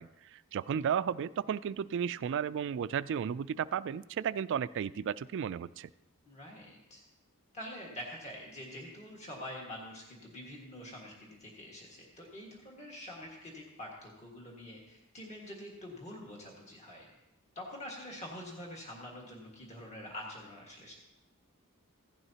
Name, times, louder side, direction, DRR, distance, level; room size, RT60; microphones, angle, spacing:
voice 1, 0.0-5.9, right 8 dB, 55° right, 16 dB, 0.3 m, -34 dB
voice 2, 6.2-7.0 7.5-17.1 17.5-20.9, left 1 dB, 30° left, -2 dB, 1.7 m, -46 dB
16.0 x 11.0 x 2.8 m, 0.92 s
head